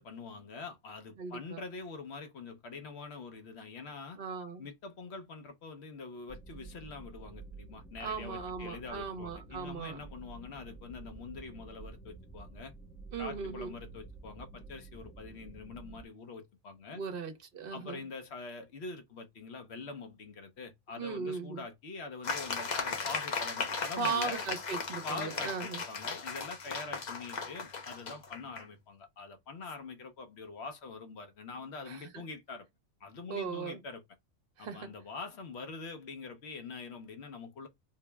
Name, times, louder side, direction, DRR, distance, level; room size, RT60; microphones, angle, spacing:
voice 1, 0.0-4.2 4.6-12.7 13.2-17.0 17.7-24.4 25.0-32.7 33.0-34.0 34.6-37.7, left 4 dB, 65° left, 1.0 m, -44 dB
voice 2, 1.2-1.6 4.2-4.7 8.0-10.0 13.1-13.8 16.9-18.0 21.0-21.6 24.0-25.8 31.9-32.2 33.3-33.8 34.6-34.9, right 5 dB, 55° right, 0.9 m, -38 dB
sound 1, 6.3-16.0, right 3 dB, 5° left, 0.6 m, -50 dB
sound 2, 22.2-28.7, left 4 dB, 45° left, 0.7 m, -37 dB
4.6 x 2.0 x 3.3 m
omnidirectional pair, 1.2 m